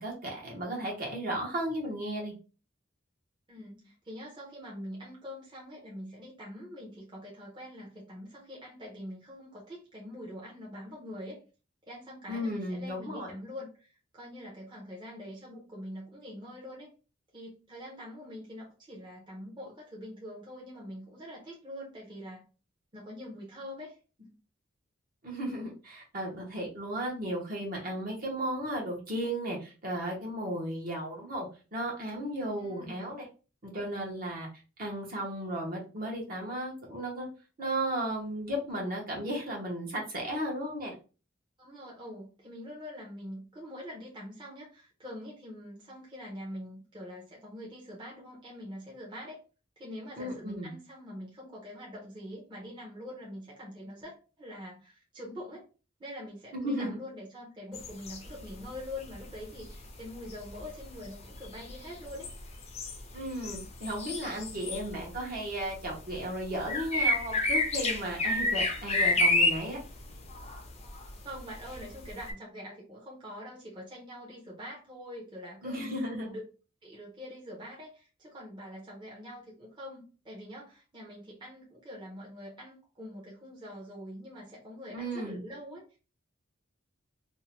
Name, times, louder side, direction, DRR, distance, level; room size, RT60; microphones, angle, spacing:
voice 1, 0.0-2.3 12.3-13.3 25.2-33.3 33.6-34.5 34.8-37.3 37.6-40.9 50.2-50.7 56.5-57.0 63.1-69.8 75.6-76.3 84.9-85.4, right 1 dB, 45° right, -2 dB, 0.9 m, -35 dB
voice 2, 3.5-11.4 11.9-13.9 14.1-16.9 17.3-22.4 22.9-24.3 32.6-33.1 41.6-49.4 49.8-55.6 56.0-62.3 69.1-69.2 71.2-75.9 76.3-76.4 76.8-85.8, equal, 25° right, -4 dB, 0.7 m, -44 dB
sound 1, 57.7-58.8 59.0-65.3 65.6-72.3, left 2 dB, 35° left, 0.5 m, -30 dB
2.7 x 2.1 x 2.9 m, 0.35 s
head